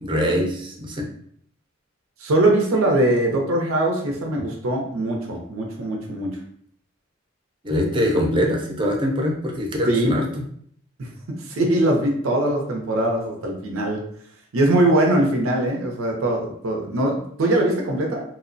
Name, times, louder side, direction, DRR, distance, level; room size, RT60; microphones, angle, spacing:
voice 1, 0.0-1.1 7.6-10.3, equal, 25° right, 1 dB, 0.4 m, -23 dB
voice 2, 2.2-6.4 9.9-10.2 11.0-11.1 11.4-14.0 14.5-18.2, right 1 dB, 90° right, 1 dB, 0.6 m, -21 dB
2.8 x 2.0 x 2.5 m, 0.64 s
head